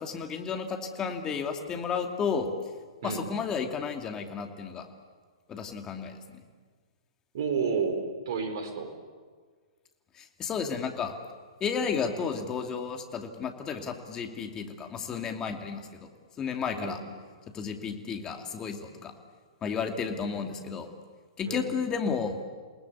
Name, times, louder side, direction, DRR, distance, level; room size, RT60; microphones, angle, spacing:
voice 1, 0.0-2.5 3.0-4.9 5.5-6.2 10.2-11.1 11.6-16.1 16.4-17.0 17.5-19.1 19.6-20.9 21.4-22.3, left 6 dB, 20° left, 5 dB, 2.7 m, -32 dB
voice 2, 7.3-8.9 16.7-17.0 21.4-21.7, right 5 dB, 55° right, 7 dB, 4.5 m, -31 dB
28.5 x 19.0 x 8.5 m, 1.5 s
figure-of-eight pair, 115°, 3 cm